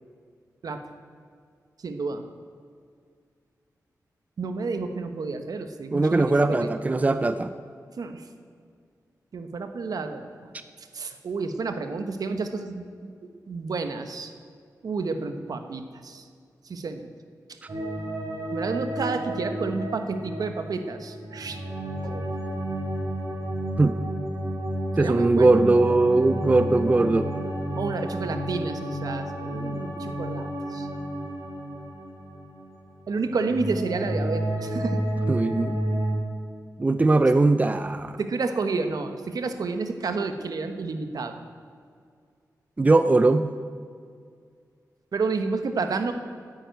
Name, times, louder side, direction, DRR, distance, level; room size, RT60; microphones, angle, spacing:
voice 1, 1.8-2.2 4.4-6.7 8.0-8.3 9.3-10.3 10.8-14.3 14.8-16.3 16.6-17.1 17.5-17.6 18.5-21.6 22.0-22.3 25.0-25.5 27.8-30.9 33.1-35.0 38.2-41.4 45.1-46.1, right 4 dB, 70° right, 8 dB, 1.1 m, -30 dB
voice 2, 5.9-7.5 23.8-24.0 25.0-27.3 35.3-35.8 36.8-38.2 42.8-43.5, right 2 dB, 25° right, 11 dB, 0.4 m, -20 dB
sound 1, 17.7-32.9 33.2-36.1, right 1 dB, 50° right, 3.8 m, -31 dB
9.9 x 9.2 x 9.3 m, 2.2 s
wide cardioid pair, 100°, 7 cm